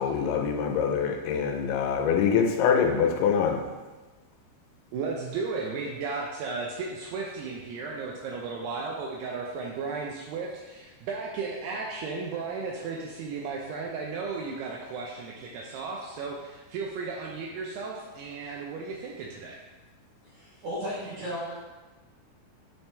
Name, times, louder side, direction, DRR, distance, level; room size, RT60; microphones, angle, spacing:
voice 1, 0.0-3.6, left 7 dB, 90° left, 3 dB, 3.0 m, -24 dB
voice 2, 4.9-19.6, right 4 dB, 80° right, -1 dB, 2.4 m, -35 dB
voice 3, 20.2-21.6, equal, 65° right, -9 dB, 1.9 m, -35 dB
9.0 x 4.4 x 3.3 m, 1.2 s
omnidirectional pair, 5.3 m